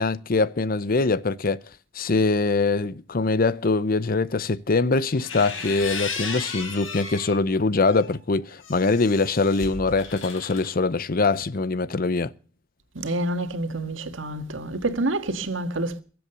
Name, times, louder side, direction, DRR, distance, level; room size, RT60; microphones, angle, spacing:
voice 1, 0.0-1.6 2.0-12.3, left 3 dB, 50° left, 0.7 m, -23 dB
sound 1, 5.1-7.4 7.9-10.7, left 5 dB, 80° left, 4.3 m, -35 dB
voice 2, 13.0-16.0, right 2 dB, 80° right, 1.8 m, -28 dB
23.0 x 7.9 x 6.8 m
head